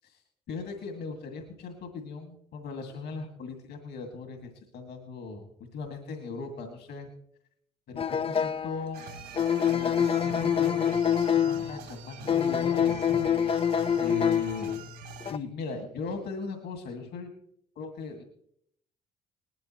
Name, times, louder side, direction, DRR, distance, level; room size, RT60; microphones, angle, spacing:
voice 1, 0.5-5.5 5.7-7.1 7.9-9.0 9.7-11.0 11.3-14.8 15.3-17.3 17.8-18.2, left 4 dB, 60° left, 4 dB, 2.2 m, -39 dB
sound 1, 8.0-8.9 9.4-11.8 12.3-14.8 15.2-15.4, left 8 dB, 30° left, 0.6 m, -26 dB
sound 2, 8.9-15.3, right 9 dB, 65° right, 2.5 m, -45 dB
20.0 x 13.0 x 3.1 m, 0.69 s
hypercardioid pair, 50°, 19 cm